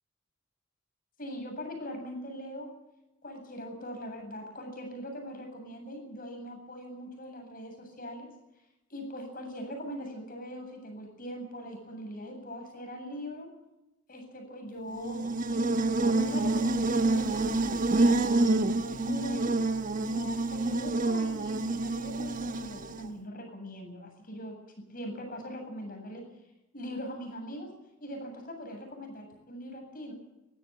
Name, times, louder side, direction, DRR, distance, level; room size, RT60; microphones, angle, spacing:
voice 1, 1.2-2.7 3.2-8.3 8.9-13.5 14.1-19.5 20.0-24.6 24.9-26.2 26.7-27.7 28.0-30.1, equal, 45° left, 4 dB, 8.0 m, -41 dB
Buzz, 14.9-23.1, right 2 dB, 45° right, 1.0 m, -28 dB
20.5 x 16.0 x 9.0 m, 0.93 s
head